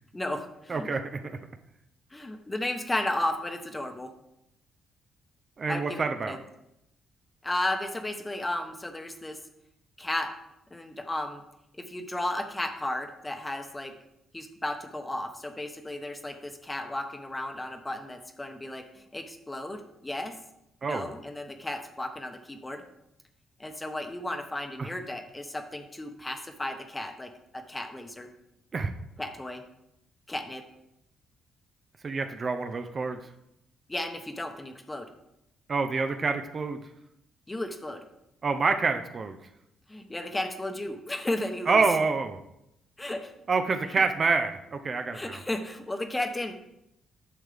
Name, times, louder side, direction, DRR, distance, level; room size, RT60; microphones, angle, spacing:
voice 1, 0.1-0.9 2.1-4.1 5.7-6.4 7.4-9.4 10.0-10.3 10.7-11.4 11.8-13.9 14.3-20.3 20.8-22.8 23.6-28.3 29.2-29.6 30.3-30.6 33.9-35.0 37.5-38.0 39.9-41.8 43.0-43.3 43.8-44.0 45.1-46.5, left 1 dB, 15° left, 6 dB, 1.0 m, -34 dB
voice 2, 0.7-1.2 5.6-6.4 20.8-21.1 24.8-24.9 28.7-28.9 32.0-33.2 35.7-36.8 38.4-39.4 41.7-42.4 43.5-45.4, right 4 dB, 40° right, 7 dB, 0.7 m, -27 dB
10.0 x 6.3 x 3.5 m, 0.82 s
cardioid pair, 90°, 0 cm